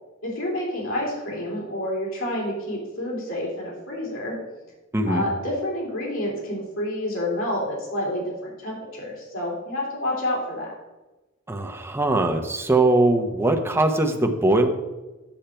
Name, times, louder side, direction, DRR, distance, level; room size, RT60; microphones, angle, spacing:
voice 1, 0.2-4.4 5.0-10.7, left 1 dB, 80° left, -4 dB, 3.2 m, -29 dB
voice 2, 4.9-5.3 11.5-14.7, right 2 dB, 10° right, 3 dB, 0.9 m, -21 dB
8.8 x 6.5 x 4.4 m, 1.1 s
head